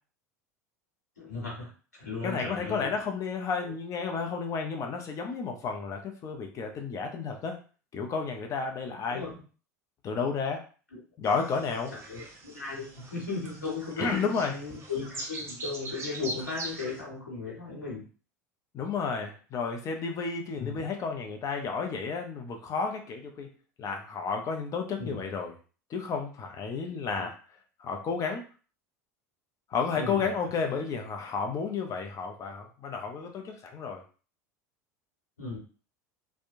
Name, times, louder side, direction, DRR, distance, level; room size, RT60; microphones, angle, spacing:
voice 1, 1.2-2.9 3.6-3.7 9.1-9.4 10.9-11.0 11.9-18.0 20.6-20.8 25.0-25.2 26.9-27.3 29.9-30.3 35.4-35.6, left 4 dB, 90° left, -4 dB, 1.1 m, -37 dB
voice 2, 2.2-7.6 7.9-9.2 10.0-10.6 11.2-11.9 14.0-14.6 18.7-23.5 23.8-25.5 25.9-27.3 27.8-28.5 29.7-34.0, left 5 dB, 40° left, 4 dB, 0.6 m, -32 dB
sound 1, 11.3-17.0, right 1 dB, 30° right, 0.7 m, -42 dB
2.9 x 2.1 x 2.5 m, 0.38 s
hypercardioid pair, 80°, 9 cm